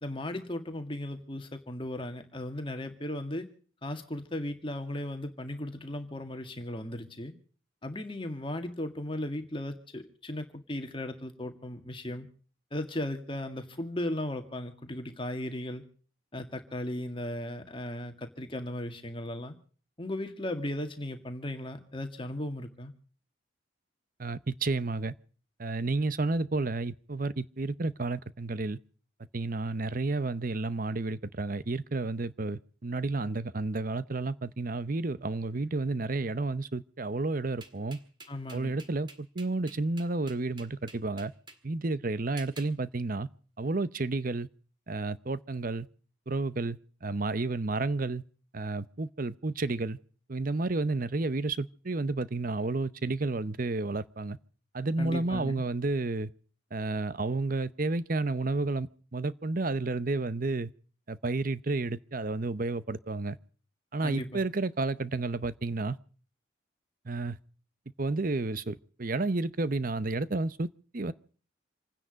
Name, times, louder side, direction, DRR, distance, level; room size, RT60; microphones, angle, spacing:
voice 1, 0.0-3.5 3.8-7.3 7.8-12.3 12.7-15.8 16.3-19.5 20.0-22.9 38.3-38.7 55.0-55.6 64.0-64.4, left 1 dB, 25° left, 1.9 m, -36 dB
voice 2, 24.2-25.1 25.6-28.8 29.3-38.0 38.5-41.3 41.6-43.3 43.6-44.5 44.9-45.9 46.3-48.2 48.5-50.0 50.3-54.4 54.7-56.3 56.7-60.7 61.1-63.4 63.9-66.0 67.1-67.4 68.0-70.7 70.9-71.1, right 3 dB, 45° right, 0.7 m, -31 dB
sound 1, 37.6-41.6 42.4-42.7, right 3 dB, 25° right, 1.9 m, -49 dB
27.5 x 9.9 x 5.2 m
head